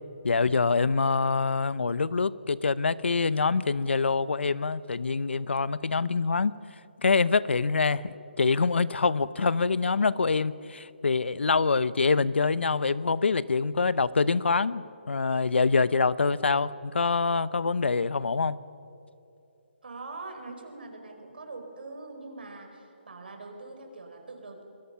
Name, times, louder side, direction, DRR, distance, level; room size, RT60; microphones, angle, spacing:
voice 1, 0.2-6.6 7.0-18.6, left 4 dB, 85° left, 17 dB, 0.8 m, -25 dB
voice 2, 19.8-24.6, right 3 dB, 60° right, 4 dB, 4.8 m, -43 dB
29.0 x 22.0 x 5.8 m, 2.7 s
hypercardioid pair, 180°, 6 cm